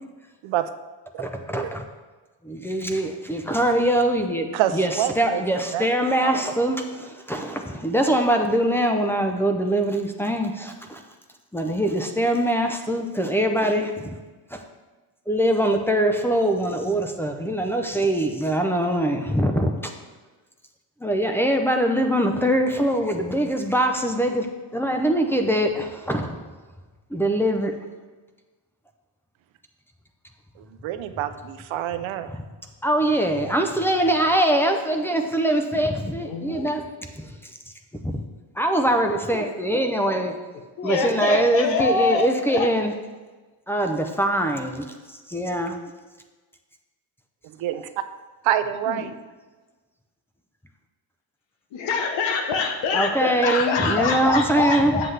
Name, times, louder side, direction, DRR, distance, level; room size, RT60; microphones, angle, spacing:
voice 1, 1.2-1.9 2.4-11.0 11.5-14.2 14.5-14.6 15.3-19.9 21.0-24.5 24.7-26.4 27.1-27.7 32.3-32.4 32.8-36.8 37.1-37.5 38.0-38.2 38.6-40.4 40.8-42.9 43.7-45.8 52.9-55.0, right 1 dB, 5° left, 4 dB, 0.4 m, -23 dB
voice 2, 4.5-5.4 5.7-5.8 6.2-6.3 30.6-32.3 47.4-47.9 48.4-49.1, right 11 dB, 75° right, 10 dB, 0.6 m, -26 dB
voice 3, 36.2-36.7 40.8-42.7 48.9-49.1 51.7-55.1, left 5 dB, 70° left, 5 dB, 1.1 m, -25 dB
7.7 x 7.6 x 3.3 m, 1.3 s
cardioid pair, 140°, 47 cm